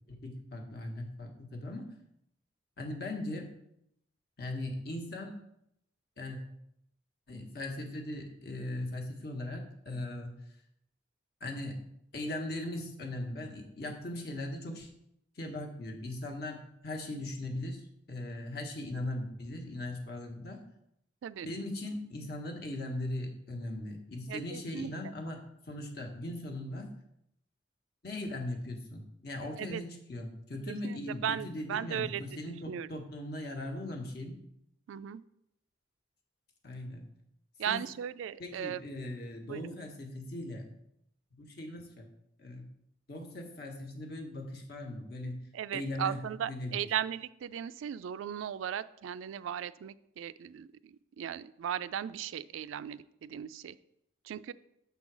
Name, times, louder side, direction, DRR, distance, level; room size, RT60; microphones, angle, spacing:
voice 1, 0.0-1.9 2.8-3.5 4.4-5.3 6.2-6.4 7.3-10.3 11.4-11.8 12.1-14.9 15.4-17.8 18.1-20.6 21.4-26.9 28.0-34.3 36.6-37.1 37.7-37.8 38.4-40.7 41.4-42.1 42.4-42.6 43.1-45.4 45.7-46.7, left 1 dB, 50° left, 3 dB, 1.2 m, -39 dB
voice 2, 24.3-25.1 29.6-29.8 30.7-32.4 32.7-33.0 34.9-35.2 37.6-38.8 39.4-39.8 45.5-53.8 54.2-54.5, right 9 dB, 80° right, 15 dB, 0.3 m, -37 dB
6.8 x 3.8 x 6.1 m, 0.78 s
head